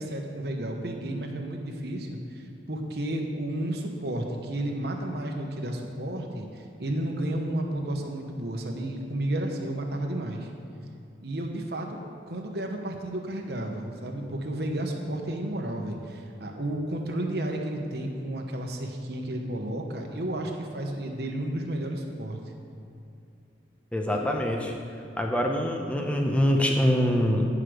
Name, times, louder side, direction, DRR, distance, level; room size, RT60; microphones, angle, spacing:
voice 1, 0.0-10.5 11.2-12.0 12.3-22.4 24.0-25.2, right 1 dB, 60° right, 2 dB, 1.0 m, -32 dB
voice 2, 23.9-24.7 25.2-27.5, equal, 5° left, 1 dB, 0.8 m, -24 dB
9.8 x 5.0 x 6.1 m, 2.6 s
head